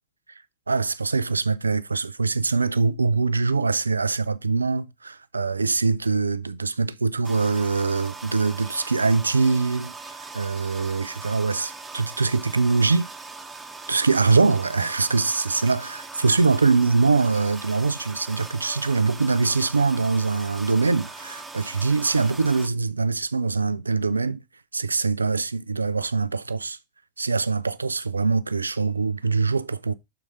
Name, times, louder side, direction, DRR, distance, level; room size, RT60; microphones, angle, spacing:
voice 1, 0.7-9.9 10.3-13.1 13.9-24.4 24.7-26.8 27.2-29.9, right 4 dB, 80° right, 0.4 m, -23 dB
sound 1, 7.2-22.7, right 3 dB, 10° right, 1.1 m, -40 dB
6.6 x 4.1 x 4.9 m
figure-of-eight pair, 90°, 0 cm